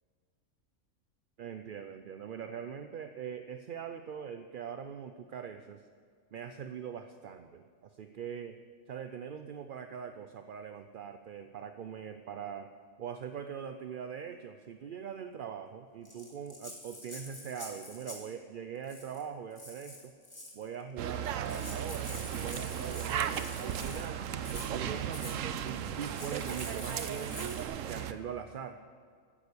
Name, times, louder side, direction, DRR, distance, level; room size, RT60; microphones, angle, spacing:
voice 1, 1.4-5.8 6.3-8.6 8.9-12.7 13.0-20.1 20.5-22.1 22.4-27.5 27.8-28.8, right 7 dB, 55° right, 8 dB, 0.6 m, -42 dB
Rattle (instrument), 16.1-18.3 18.8-19.2 19.6-20.6 21.2-21.3 21.5-24.1 24.4-24.7 25.1-25.4 26.0-27.6, left 1 dB, 20° left, 2.3 m, -46 dB
sound 1, 21.0-28.1, right 9 dB, 80° right, 1.1 m, -36 dB
14.5 x 10.0 x 6.9 m, 2.1 s
omnidirectional pair, 1.3 m